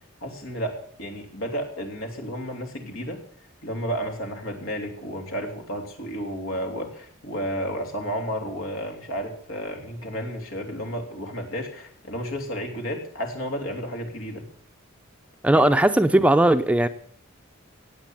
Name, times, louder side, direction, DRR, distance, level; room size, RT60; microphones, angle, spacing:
voice 1, 0.2-3.2 3.6-14.4, equal, 90° left, 3 dB, 3.1 m, -32 dB
voice 2, 15.4-16.9, right 1 dB, 5° right, 10 dB, 0.5 m, -18 dB
17.5 x 8.4 x 7.4 m, 0.64 s
head